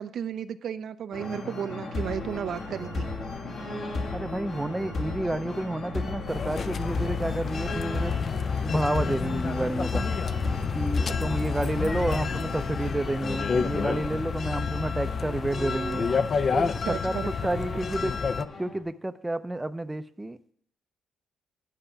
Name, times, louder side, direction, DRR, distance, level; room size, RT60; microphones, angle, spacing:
voice 1, 0.0-3.1 16.9-17.3, right 8 dB, 65° right, 11 dB, 0.4 m, -33 dB
sound 1, 1.1-18.8, left 2 dB, 60° left, 2.1 m, -36 dB
voice 2, 4.1-8.1 8.6-10.1 10.7-16.1 16.5-17.2 17.4-18.2 18.6-20.5, right 1 dB, 10° right, 11 dB, 0.5 m, -30 dB
sound 2, 6.3-18.5, left 5 dB, 45° left, 0.4 m, -29 dB
sound 3, 7.5-14.6, left 1 dB, 15° left, 0.9 m, -44 dB
10.0 x 5.8 x 5.7 m, 0.63 s
cardioid pair, 90°, 0 cm